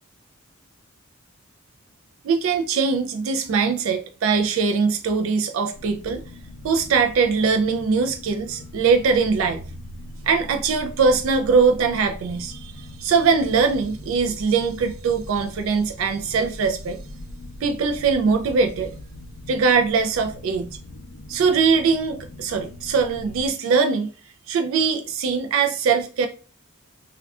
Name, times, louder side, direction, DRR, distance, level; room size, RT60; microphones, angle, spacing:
voice 1, 2.2-6.2 6.6-9.6 10.2-17.0 17.6-18.9 19.5-20.8 21.3-24.1 24.5-26.3, right 5 dB, 70° right, 0.3 m, -21 dB
sound 1, 5.7-23.5, left 1 dB, 60° left, 0.4 m, -40 dB
2.3 x 2.2 x 3.4 m
head